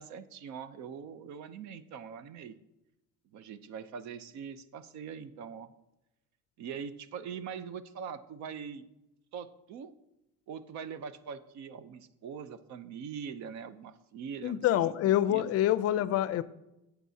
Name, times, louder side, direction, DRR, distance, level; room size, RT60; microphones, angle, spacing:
voice 1, 0.0-2.5 3.3-5.7 6.6-8.8 9.3-9.9 10.5-15.5, right 7 dB, 60° right, 13 dB, 0.7 m, -42 dB
voice 2, 14.4-16.4, left 12 dB, 50° left, 15 dB, 0.4 m, -26 dB
12.0 x 8.2 x 2.8 m, 0.92 s
cardioid pair, 145°, 32 cm